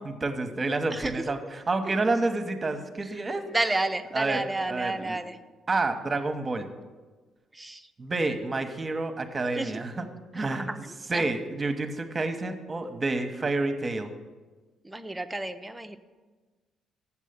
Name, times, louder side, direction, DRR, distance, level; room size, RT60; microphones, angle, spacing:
voice 1, 0.0-3.5 4.1-5.2 5.7-6.7 8.0-10.1 10.3-14.1, right 3 dB, 30° right, 7 dB, 1.0 m, -29 dB
voice 2, 3.5-5.3 7.6-7.8 9.6-9.7 10.4-10.8 11.1-11.2 14.9-16.0, right 2 dB, 15° right, 9 dB, 0.6 m, -30 dB
7.4 x 7.1 x 6.8 m, 1.3 s
hypercardioid pair, 45°, 0 cm